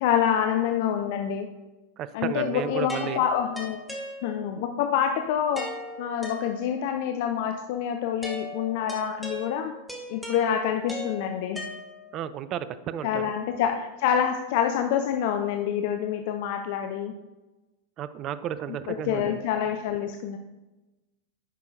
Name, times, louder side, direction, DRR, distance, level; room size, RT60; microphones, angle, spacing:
voice 1, 0.0-1.5 2.1-3.8 4.2-5.7 6.0-9.7 10.1-11.7 13.0-17.1 18.9-20.4, left 9 dB, 50° left, 6 dB, 0.4 m, -27 dB
voice 2, 2.0-3.2 12.1-13.3 18.0-19.5, right 10 dB, 35° right, 14 dB, 0.3 m, -33 dB
sound 1, 2.9-4.7 5.6-7.0 8.2-12.3, left 1 dB, 5° right, 1.2 m, -39 dB
10.0 x 5.5 x 2.6 m, 1.1 s
figure-of-eight pair, 90°, 0 cm